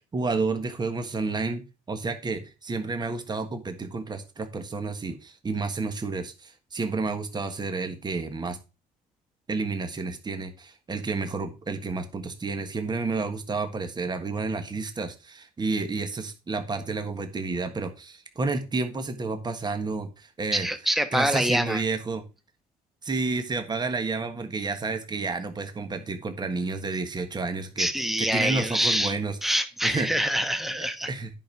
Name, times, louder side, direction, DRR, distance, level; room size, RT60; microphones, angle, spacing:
voice 1, 0.0-8.6 9.5-20.7 21.1-22.2 23.0-27.9 28.2-29.3 29.8-30.1 30.7-31.3, right 3 dB, 25° right, 7 dB, 1.5 m, -30 dB
voice 2, 20.5-21.8 27.8-31.1, equal, ahead, 9 dB, 1.2 m, -26 dB
10.0 x 5.4 x 4.7 m, 0.30 s
cardioid pair, 110°, 17 cm